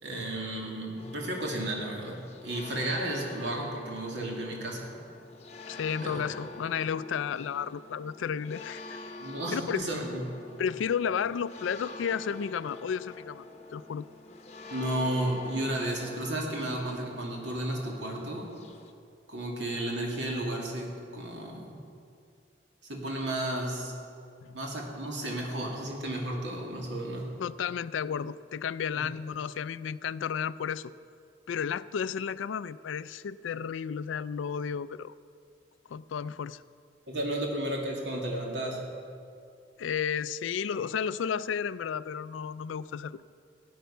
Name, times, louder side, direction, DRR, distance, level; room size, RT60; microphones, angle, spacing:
voice 1, 0.0-5.0 6.0-6.3 9.2-10.2 14.7-18.5 19.3-21.8 22.8-23.9 24.5-27.3 29.0-29.1 37.1-38.9, right 1 dB, 70° right, -1 dB, 2.3 m, -33 dB
sound 1, 1.0-18.9, left 3 dB, 35° left, 0.8 m, -46 dB
voice 2, 5.7-9.2 9.5-9.8 10.6-13.4 13.7-14.0 24.4-24.6 27.4-30.9 31.5-35.1 35.9-36.6 39.8-43.2, left 7 dB, 90° left, 17 dB, 0.4 m, -32 dB
14.5 x 9.4 x 5.6 m, 2.4 s
head